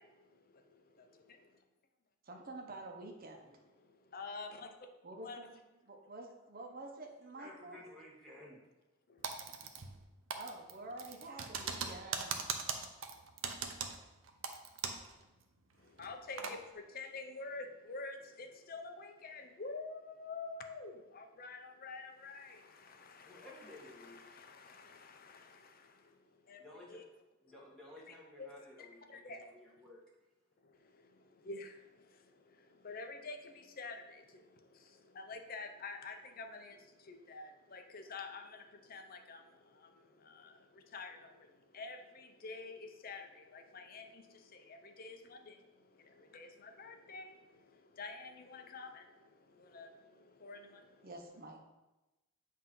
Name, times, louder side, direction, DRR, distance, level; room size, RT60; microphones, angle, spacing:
voice 1, 0.0-1.6 3.8-4.8 5.2-5.4 9.1-9.3 15.8-27.0 28.4-28.5 28.8-29.6 30.6-51.1, left 3 dB, 45° left, 6 dB, 0.6 m, -49 dB
voice 2, 2.2-3.6 5.0-7.8 10.3-12.4 51.0-51.7, right 2 dB, 45° right, 2 dB, 0.9 m, -49 dB
voice 3, 7.3-8.6 23.2-24.3 26.6-27.0 27.4-30.0, left 1 dB, 5° left, -6 dB, 1.5 m, -55 dB
Typing, 9.2-10.0 10.3-15.1 15.4-15.5 16.0-16.6, right 6 dB, 80° right, 0.6 m, -40 dB
7.8 x 2.8 x 5.4 m, 1.0 s
head